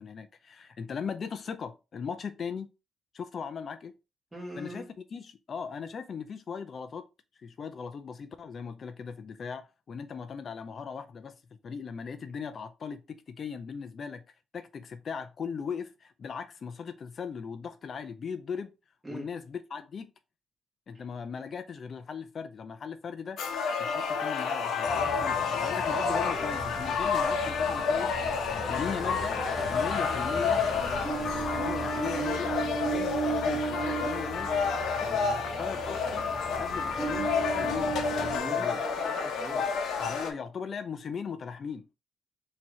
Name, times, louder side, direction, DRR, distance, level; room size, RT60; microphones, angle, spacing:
voice 1, 0.0-2.7 3.1-3.9 4.6-4.9 5.1-7.1 7.4-11.3 11.6-14.2 14.5-18.7 19.1-20.1 20.9-23.4 23.8-28.1 28.5-29.4 29.7-30.6 31.2-34.5 35.0-36.3 36.6-38.8 39.5-39.7 40.0-41.9, left 6 dB, 50° left, 0.4 m, -38 dB
voice 2, 4.3-4.9 19.0-19.3 20.9-21.0 38.3-39.7, right 1 dB, 15° right, 1.9 m, -41 dB
sound 1, 23.4-40.3, left 5 dB, 75° left, 0.9 m, -30 dB
Ocean, 24.9-38.4, right 3 dB, 30° left, 1.6 m, -36 dB
4.4 x 2.8 x 3.1 m
cardioid pair, 90°, 0 cm